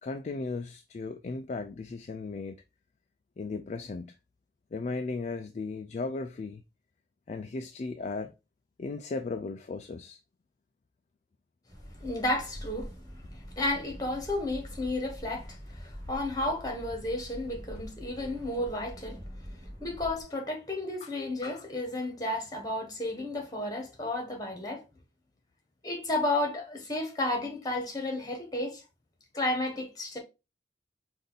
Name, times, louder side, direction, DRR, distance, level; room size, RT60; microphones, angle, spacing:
voice 1, 0.0-2.6 3.4-4.1 4.7-6.6 7.3-8.3 8.8-10.2 21.0-21.1, left 3 dB, 40° left, 0.3 m, -36 dB
sound 1, 11.7-20.2, equal, 20° right, 1.2 m, -45 dB
voice 2, 12.0-12.9 13.6-19.2 19.8-24.8 25.8-28.8 29.3-30.2, left 1 dB, 20° left, 1.4 m, -32 dB
5.2 x 2.6 x 4.0 m
head